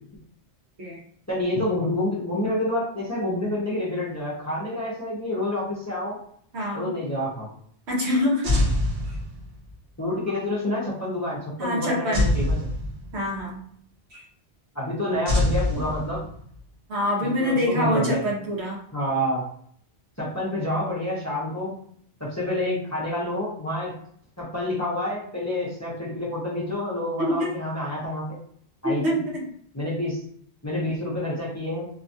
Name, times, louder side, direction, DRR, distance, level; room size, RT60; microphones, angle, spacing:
voice 1, 1.3-6.2 6.7-7.5 10.0-12.5 14.7-16.2 17.2-18.2 18.9-19.4 20.2-21.8 22.2-23.9 24.4-28.4 28.8-29.2 29.7-30.2 30.6-31.9, left 1 dB, 15° left, -6 dB, 0.7 m, -28 dB
voice 2, 6.5-6.9 7.9-8.7 9.1-9.2 11.6-12.3 13.1-13.6 14.1-14.2 16.9-18.8 27.2-27.5 28.8-29.5, left 1 dB, 80° right, -2 dB, 1.2 m, -25 dB
sound 1, 8.4-9.7 12.1-13.4 15.3-16.6, left 1 dB, 50° right, 1.0 m, -24 dB
2.8 x 2.3 x 2.6 m, 0.62 s
omnidirectional pair, 1.1 m